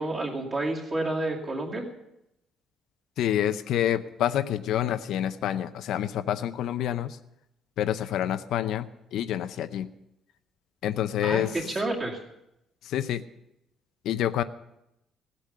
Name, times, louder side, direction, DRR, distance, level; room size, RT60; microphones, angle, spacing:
voice 1, 0.0-1.8 11.2-11.5 11.7-12.2, right 2 dB, 25° right, -2 dB, 2.3 m, -29 dB
voice 2, 3.2-7.2 7.8-9.9 10.8-11.6 12.8-13.2 14.0-14.4, left 11 dB, 70° left, 11 dB, 0.6 m, -27 dB
17.0 x 8.4 x 6.8 m, 0.86 s
cardioid pair, 175°, 0 cm